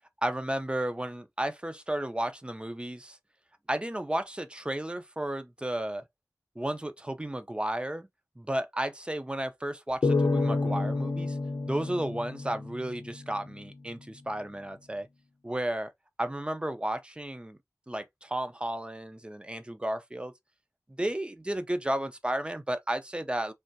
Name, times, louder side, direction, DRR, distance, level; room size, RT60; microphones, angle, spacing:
voice 1, 0.2-3.2 3.7-6.0 6.6-8.1 8.4-11.4 11.7-15.1 15.4-15.9 16.2-17.6 17.9-20.3 20.9-23.5, right 1 dB, 15° right, 0.5 m, -33 dB
sound 1, 10.0-13.4, left 3 dB, 90° left, 0.5 m, -29 dB
3.2 x 2.4 x 2.6 m
wide cardioid pair, 65°, 6 cm